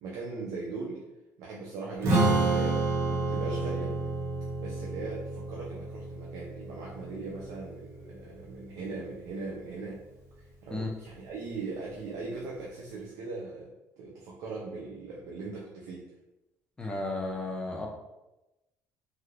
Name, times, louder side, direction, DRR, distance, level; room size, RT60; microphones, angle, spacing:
voice 1, 0.0-1.0 1.4-4.0 4.6-10.0 10.6-13.7 14.0-16.1, right 3 dB, 70° right, -3 dB, 0.5 m, -39 dB
Strum, 2.0-8.3, right 2 dB, 50° right, 0.9 m, -30 dB
voice 2, 16.8-17.9, left 2 dB, 15° left, 0 dB, 0.3 m, -33 dB
3.3 x 2.7 x 2.4 m, 0.98 s
cardioid pair, 175°, 6 cm